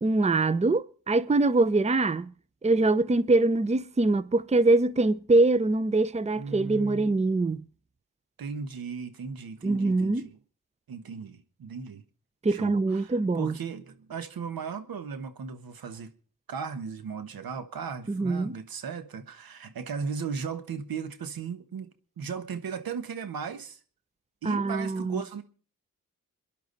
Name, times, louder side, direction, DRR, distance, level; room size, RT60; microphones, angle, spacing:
voice 1, 0.0-2.3 2.6-7.6 9.6-10.2 12.4-13.5 18.1-18.5 24.4-25.2, right 2 dB, 20° right, 0.7 m, -24 dB
voice 2, 6.3-7.1 8.4-10.4 10.9-12.0 12.5-16.1 16.5-21.9 22.2-23.8 24.4-25.4, right 6 dB, 75° right, 1.5 m, -36 dB
27.0 x 11.0 x 4.1 m
supercardioid pair, 45°, 36 cm